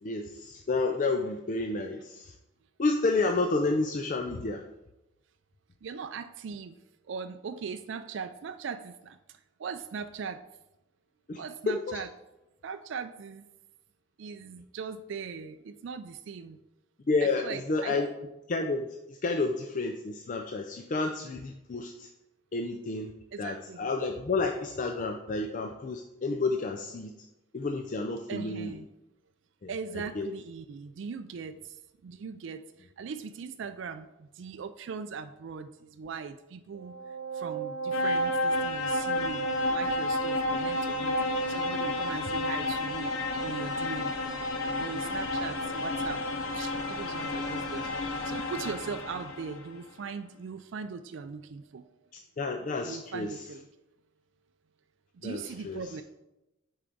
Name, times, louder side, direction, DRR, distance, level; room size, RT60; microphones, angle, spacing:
voice 1, 0.0-2.3 2.8-4.6 11.3-11.4 11.7-12.0 17.1-18.1 18.5-22.1 22.5-23.1 23.4-27.1 27.5-28.7 29.6-29.7 30.2-30.3 52.4-53.4 55.2-55.8, left 3 dB, 40° left, 4 dB, 0.4 m, -30 dB
voice 2, 5.8-6.8 7.1-9.2 9.6-10.4 11.4-12.1 12.6-13.5 14.2-16.6 17.2-18.0 23.3-23.9 28.3-28.9 29.7-31.8 32.0-37.0 37.3-43.1 43.4-44.1 44.8-46.2 46.5-47.9 48.2-51.9 52.8-53.7 55.2-56.0, right 5 dB, 60° right, 9 dB, 0.4 m, -40 dB
sound 1, 36.8-49.6, left 1 dB, 80° left, 0.8 m, -31 dB
7.6 x 4.8 x 3.9 m, 0.94 s
head